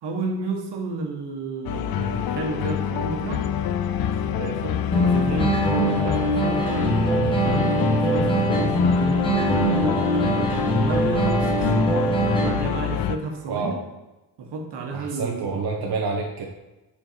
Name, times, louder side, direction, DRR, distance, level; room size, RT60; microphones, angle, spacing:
voice 1, 0.0-3.5 4.0-11.7 12.4-13.8 14.4-15.6, right 3 dB, 80° right, 2 dB, 1.4 m, -32 dB
sound 1, 1.6-13.2, left 10 dB, 60° left, 0.5 m, -26 dB
sound 2, 4.9-12.9, right 1 dB, 10° left, 1.4 m, -22 dB
voice 2, 13.5-13.8 14.9-16.4, right 4 dB, 65° right, 0 dB, 0.9 m, -28 dB
7.6 x 4.4 x 4.5 m, 1.1 s
cardioid pair, 125°, 41 cm